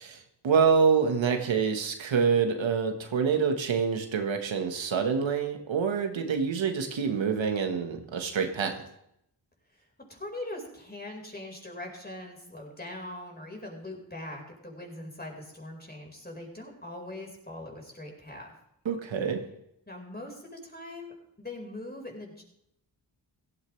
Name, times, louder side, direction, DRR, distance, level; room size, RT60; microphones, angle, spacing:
voice 1, 0.0-8.8 18.8-19.4, right 6 dB, 85° right, 5 dB, 1.5 m, -26 dB
voice 2, 9.7-18.5 19.9-22.4, left 1 dB, 20° left, 1 dB, 4.7 m, -41 dB
16.5 x 13.0 x 3.3 m, 0.77 s
cardioid pair, 55°, 45 cm